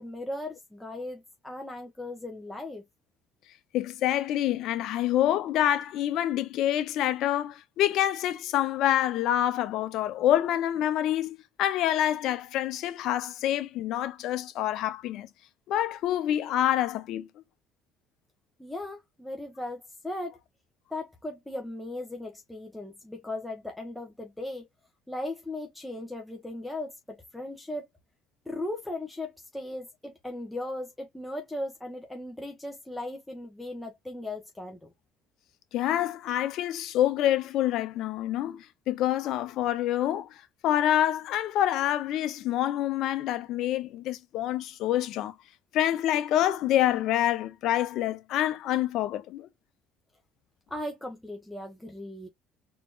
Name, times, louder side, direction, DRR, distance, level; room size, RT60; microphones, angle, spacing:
voice 1, 0.0-2.8 18.6-20.4 20.9-24.6 25.1-27.9 28.5-34.9 50.7-52.3, left 1 dB, 5° left, 1.3 m, -37 dB
voice 2, 3.7-15.3 15.7-17.3 35.7-40.3 40.6-45.3 45.7-49.5, left 12 dB, 70° left, 0.8 m, -27 dB
4.3 x 3.1 x 2.5 m
supercardioid pair, 80°, 0 cm